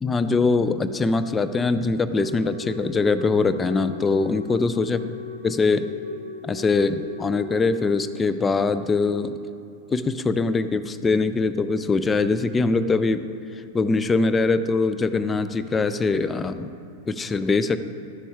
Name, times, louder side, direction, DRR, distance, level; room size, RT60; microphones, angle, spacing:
voice 1, 0.0-5.0 5.4-5.9 6.4-9.4 9.9-13.3 13.7-16.7 17.1-17.8, left 3 dB, 15° left, 11 dB, 0.4 m, -22 dB
Wind instrument woodwind instrument, 2.1-8.2, left 5 dB, 85° right, 0.5 m, -38 dB
10.5 x 6.8 x 3.6 m, 2.8 s
figure-of-eight pair, 90°, 0 cm